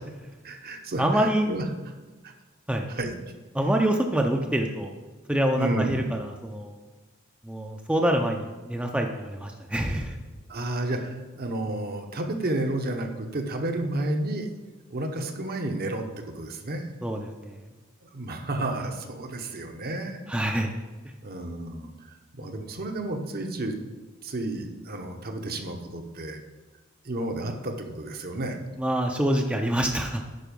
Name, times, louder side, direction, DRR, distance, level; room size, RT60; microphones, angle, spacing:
voice 1, 0.4-1.7 2.2-2.3 2.9-3.1 5.6-6.0 10.5-14.5 14.9-16.9 18.0-20.2 21.2-23.7 24.2-26.4 27.0-28.6, right 1 dB, 50° right, 4 dB, 0.9 m, -31 dB
voice 2, 1.0-1.5 2.7-2.9 3.5-4.9 5.3-6.7 7.4-10.2 17.0-17.6 20.3-20.8 28.8-30.2, right 1 dB, 5° right, 2 dB, 0.5 m, -26 dB
9.4 x 5.1 x 5.3 m, 1.2 s
head